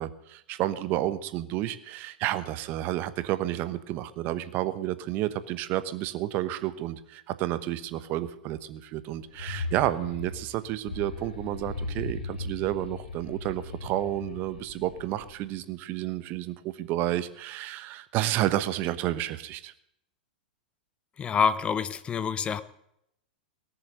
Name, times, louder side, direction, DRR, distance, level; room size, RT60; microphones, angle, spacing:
voice 1, 0.0-19.7, right 14 dB, 40° right, 13 dB, 1.1 m, -31 dB
sound 1, 9.2-15.6, left 3 dB, 70° left, 2.2 m, -38 dB
voice 2, 21.2-22.6, left 6 dB, 20° left, 15 dB, 0.9 m, -26 dB
18.0 x 7.1 x 9.3 m, 0.76 s
figure-of-eight pair, 100°, 5 cm